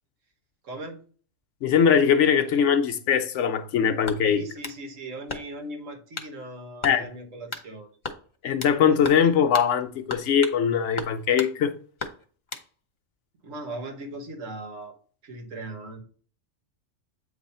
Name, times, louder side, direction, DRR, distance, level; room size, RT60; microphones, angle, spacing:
voice 1, 0.6-1.0 4.2-7.9 13.4-15.0 15.2-16.0, right 1 dB, 85° right, 1.6 m, -38 dB
voice 2, 1.6-4.4 6.8-7.1 8.4-11.8, left 7 dB, 70° left, 1.0 m, -21 dB
sound 1, 4.1-4.8 5.3-5.7 6.1-6.3 6.8-7.0 7.5-7.7 8.0-8.8 9.0-9.3 9.5-9.7 10.1-10.6 11.0-11.5 12.0-12.7, left 3 dB, 30° left, 0.7 m, -35 dB
8.4 x 3.0 x 4.1 m
omnidirectional pair, 1.3 m